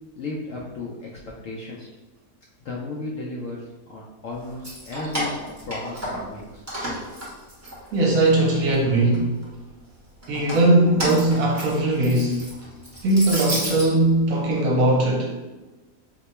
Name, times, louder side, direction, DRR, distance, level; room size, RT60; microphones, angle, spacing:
voice 1, 0.2-1.1 1.4-1.9 2.6-5.3 5.6-6.6, left 2 dB, 70° left, -3 dB, 0.8 m, -34 dB
Keys jangling, 4.5-6.4 6.7-8.3 8.7-9.5 10.2-13.9, equal, 15° right, 0.7 m, -31 dB
voice 2, 7.9-9.4 10.3-12.5 13.0-15.3, right 2 dB, 70° right, -1 dB, 1.0 m, -19 dB
2.9 x 2.2 x 4.1 m, 1.1 s
omnidirectional pair, 1.7 m